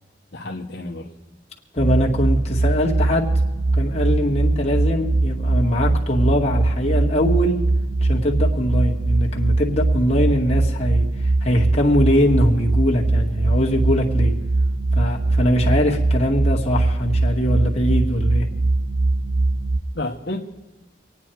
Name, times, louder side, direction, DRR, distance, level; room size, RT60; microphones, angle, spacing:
voice 1, 0.3-1.1 19.9-20.4, left 2 dB, 60° left, -1 dB, 1.2 m, -30 dB
voice 2, 1.7-3.3 3.7-7.6 8.0-11.1 11.4-14.3 15.0-18.5, equal, 35° left, -2 dB, 2.0 m, -22 dB
sound 1, 1.8-19.8, right 2 dB, 50° right, 0.8 m, -21 dB
26.0 x 9.3 x 4.7 m, 1.1 s
head